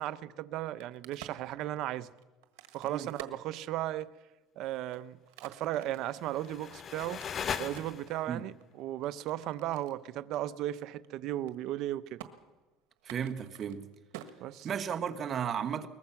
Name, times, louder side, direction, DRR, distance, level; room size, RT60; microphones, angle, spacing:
voice 1, 0.0-2.1 2.7-4.1 4.6-7.2 7.6-12.2 14.4-14.7, right 13 dB, 60° right, 0.7 m, -36 dB
Crack, 0.7-4.2 4.7-8.0 8.6-10.0 10.3-10.4 10.7-11.1 11.3-11.9 12.2-12.3 13.0-15.2, right 12 dB, 90° right, 1.5 m, -50 dB
sound 1, 6.0-8.4, left 7 dB, 35° left, 0.8 m, -39 dB
voice 2, 13.0-13.9 14.6-15.9, right 8 dB, 40° right, 1.4 m, -34 dB
22.0 x 20.0 x 5.9 m
cardioid pair, 120°, 0 cm